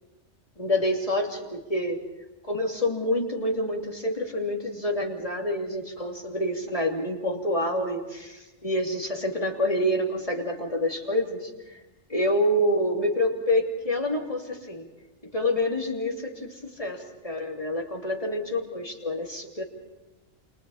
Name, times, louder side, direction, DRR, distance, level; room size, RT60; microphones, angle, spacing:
voice 1, 0.6-2.0 2.5-11.8 12.1-14.9 15.3-19.6, left 1 dB, 30° left, 0 dB, 3.0 m, -27 dB
29.5 x 27.0 x 4.2 m, 1.1 s
omnidirectional pair, 1.2 m